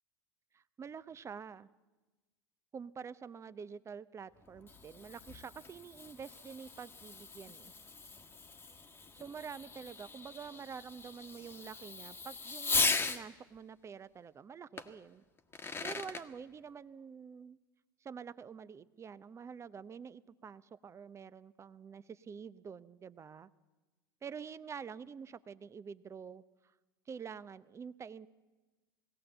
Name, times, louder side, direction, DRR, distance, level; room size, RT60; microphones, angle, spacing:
voice 1, 0.5-1.7 2.7-7.7 9.1-15.2 15.8-17.6 18.0-23.5 24.2-26.4 27.1-28.3, right 6 dB, 25° right, 16 dB, 0.7 m, -47 dB
Fireworks, 4.4-13.2 14.8-14.9 15.4-16.2, left 4 dB, 20° left, 1.4 m, -38 dB
20.0 x 16.5 x 7.9 m, 1.2 s
hypercardioid pair, 85°, 12 cm